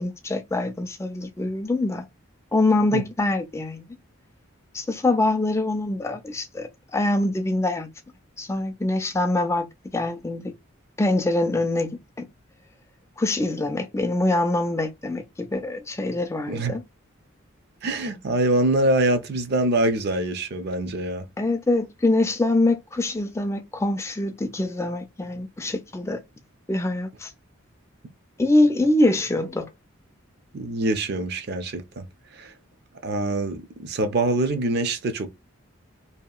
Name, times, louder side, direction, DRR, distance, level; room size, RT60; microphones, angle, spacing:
voice 1, 0.0-2.1 2.5-3.8 4.7-7.9 8.4-10.5 11.0-12.3 13.2-16.8 21.4-26.2 26.7-27.3 28.4-29.7, left 2 dB, 15° left, 0.3 m, -24 dB
voice 2, 16.5-16.8 17.8-21.2 30.5-32.1 32.3-32.5 33.0-35.3, right 2 dB, 50° right, 0.5 m, -24 dB
2.8 x 2.4 x 2.2 m
head